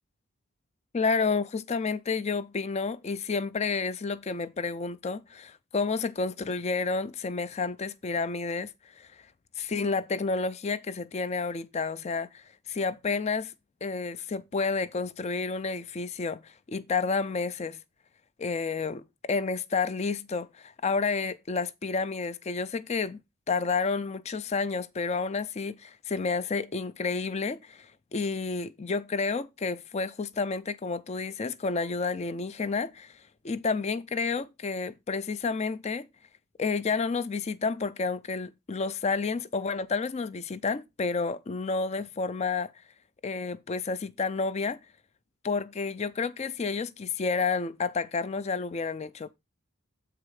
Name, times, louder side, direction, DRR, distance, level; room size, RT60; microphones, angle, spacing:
voice 1, 0.9-9.1 9.6-13.5 13.8-17.8 18.4-23.2 23.5-33.1 33.4-36.1 36.6-42.7 43.2-44.8 45.4-49.3, left 4 dB, 30° left, 0.4 m, -30 dB
7.9 x 4.2 x 4.8 m
head